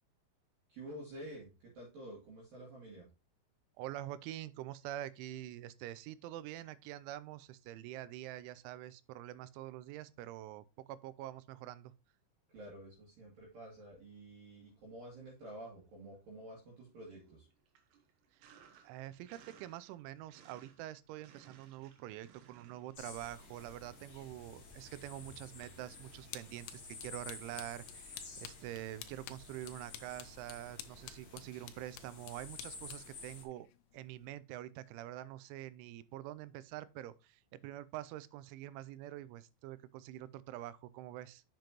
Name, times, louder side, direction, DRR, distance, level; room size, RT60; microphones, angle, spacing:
voice 1, 0.7-3.0 12.5-17.5, right 1 dB, 55° right, 3.5 m, -50 dB
voice 2, 3.8-11.9 18.8-33.7 33.9-41.4, right 14 dB, 90° right, 3.0 m, -46 dB
Sink (filling or washing), 14.6-15.5 15.8-31.9, right 8 dB, 70° right, 3.0 m, -65 dB
sound 1, 22.9-33.4, left 4 dB, 60° left, 1.1 m, -52 dB
sound 2, 26.3-34.4, left 13 dB, 80° left, 2.7 m, -53 dB
7.6 x 7.2 x 3.0 m
omnidirectional pair, 5.4 m